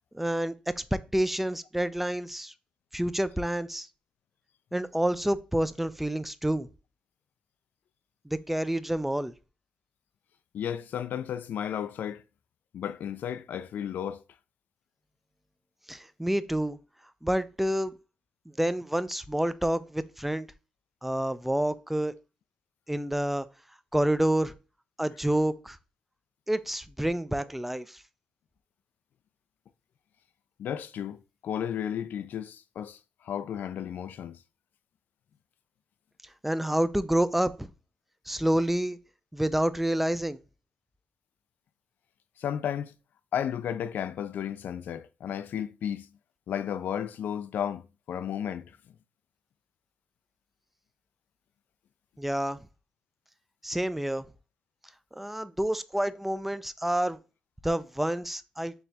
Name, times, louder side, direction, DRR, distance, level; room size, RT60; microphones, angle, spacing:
voice 1, 0.1-2.5 2.9-3.9 4.7-6.7 8.3-9.3 15.9-16.8 17.2-17.9 18.6-20.5 21.0-22.1 22.9-23.5 23.9-24.5 25.0-25.8 26.5-28.0 36.4-37.7 38.3-39.0 39.3-40.4 52.2-52.6 53.6-54.3 55.1-57.2 57.6-58.7, right 1 dB, 5° right, 0.4 m, -28 dB
voice 2, 10.5-12.2 12.7-14.2 30.6-34.4 42.4-42.9 43.3-46.1 46.5-48.7, left 9 dB, 70° left, 0.3 m, -33 dB
4.5 x 3.2 x 2.7 m
supercardioid pair, 65°, 3 cm